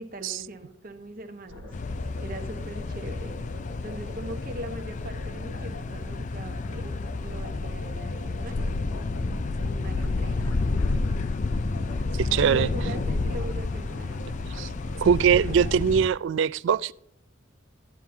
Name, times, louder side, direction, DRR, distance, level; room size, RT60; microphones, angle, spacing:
voice 1, 0.0-1.7 2.2-3.3 3.8-8.8 9.6-10.4 12.4-14.2, right 1 dB, 40° right, 1.1 m, -40 dB
sound 1, 1.5-15.7, left 2 dB, 80° left, 1.2 m, -42 dB
sound 2, 1.7-16.1, left 3 dB, 35° left, 0.4 m, -30 dB
voice 2, 12.2-12.7 14.6-14.7 15.0-16.9, right 7 dB, 65° right, 0.3 m, -22 dB
14.5 x 9.1 x 2.8 m
head